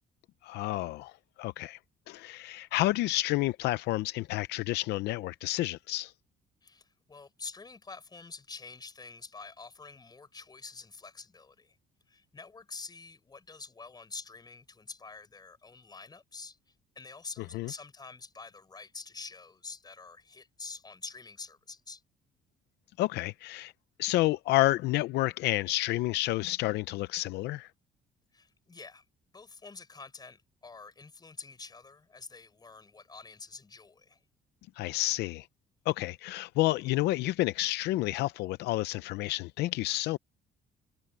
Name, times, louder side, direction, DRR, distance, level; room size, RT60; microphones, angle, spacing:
voice 1, 0.4-1.1 1.4-1.8 2.1-6.1 17.5-17.7 23.0-23.7 24.0-27.7 34.8-35.5 35.9-40.2, left 17 dB, 80° left, 0.6 m, -30 dB
voice 2, 6.6-11.8 12.1-16.6 16.9-22.0 28.3-29.0 29.3-34.2, left 4 dB, 25° left, 6.5 m, -47 dB
cardioid pair, 110°, 17 cm